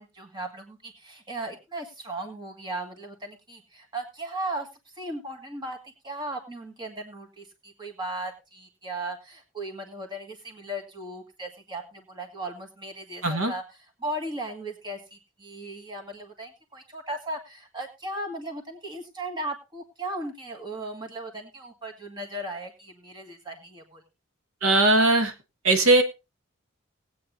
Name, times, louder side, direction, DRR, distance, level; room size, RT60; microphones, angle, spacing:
voice 1, 0.0-4.7 4.9-24.0, right 1 dB, 20° right, 2 dB, 1.7 m, -37 dB
voice 2, 24.6-25.3 25.6-26.0, right 2 dB, 85° right, 6 dB, 1.6 m, -19 dB
20.0 x 8.7 x 2.6 m, 0.26 s
head